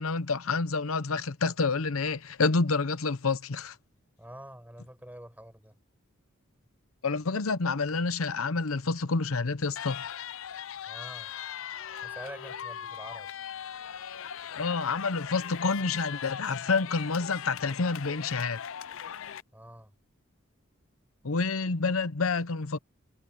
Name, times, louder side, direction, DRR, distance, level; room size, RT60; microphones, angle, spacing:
voice 1, 0.0-3.8 7.0-10.0 14.6-18.6 21.2-22.8, left 4 dB, 85° left, 0.9 m, -28 dB
voice 2, 4.2-5.8 10.9-11.3 12.0-13.3 19.5-19.9, right 1 dB, 10° right, 6.0 m, -46 dB
sound 1, 9.8-19.4, left 9 dB, 70° left, 0.5 m, -39 dB
head